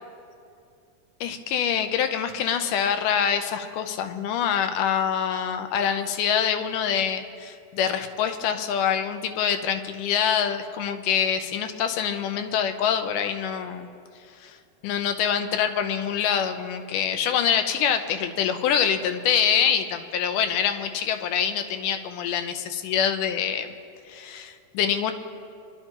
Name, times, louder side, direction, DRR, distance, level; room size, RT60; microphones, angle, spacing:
voice 1, 1.2-13.9 14.4-14.6 14.8-23.7 24.1-25.1, left 8 dB, 85° left, 8 dB, 2.3 m, -25 dB
25.5 x 11.5 x 2.9 m, 2.5 s
omnidirectional pair, 3.6 m